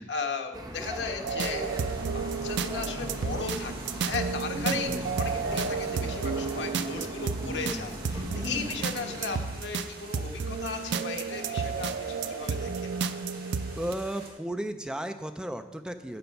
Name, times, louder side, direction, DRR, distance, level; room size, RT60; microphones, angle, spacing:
voice 1, 0.0-1.7 2.1-12.9, left 4 dB, 80° left, 3 dB, 1.1 m, -36 dB
sound 1, 0.5-9.4, right 1 dB, 20° right, 1.1 m, -39 dB
sound 2, 1.2-13.9, right 5 dB, 80° right, 0.4 m, -32 dB
sound 3, 1.4-14.3, right 3 dB, 55° right, 2.1 m, -47 dB
voice 2, 4.5-5.1 7.4-7.9 8.4-8.8 13.8-16.2, right 1 dB, 5° right, 8 dB, 0.4 m, -35 dB
9.4 x 6.8 x 5.7 m, 1.2 s
head